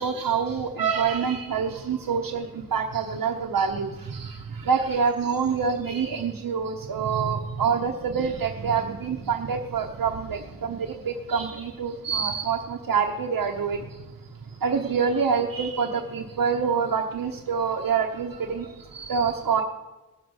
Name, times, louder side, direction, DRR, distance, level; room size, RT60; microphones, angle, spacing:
voice 1, 0.0-4.3 4.6-13.8 14.6-18.6 18.9-19.6, right 6 dB, 90° right, 1 dB, 1.1 m, -26 dB
18.5 x 7.0 x 7.9 m, 1.1 s
wide cardioid pair, 80°, 33 cm